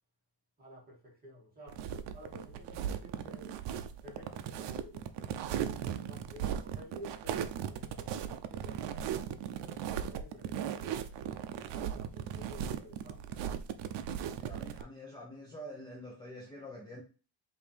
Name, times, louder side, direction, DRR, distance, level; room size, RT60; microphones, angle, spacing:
voice 1, 0.6-1.8 2.1-3.6 4.0-5.1 5.5-8.2 8.5-9.3 9.7-11.0 11.7-13.7, equal, 20° right, 1.8 m, -52 dB
sound 1, 1.7-14.8, right 9 dB, 75° right, 0.6 m, -37 dB
voice 2, 14.4-17.0, equal, 10° left, 0.8 m, -47 dB
5.3 x 2.7 x 3.3 m
cardioid pair, 165°, 42 cm